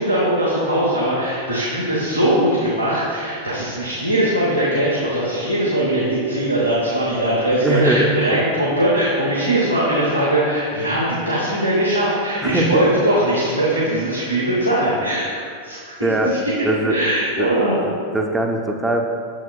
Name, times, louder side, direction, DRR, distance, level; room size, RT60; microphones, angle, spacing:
voice 1, 0.0-15.3 15.6-15.9 16.6-17.8, right 1 dB, 85° right, -8 dB, 1.0 m, -20 dB
voice 2, 7.6-8.1 12.4-12.9 16.0-16.3 16.6-17.0 17.4-17.5 17.9-19.0, right 1 dB, 10° right, 2 dB, 0.5 m, -20 dB
7.0 x 6.1 x 2.3 m, 2.3 s
figure-of-eight pair, 90°, 0 cm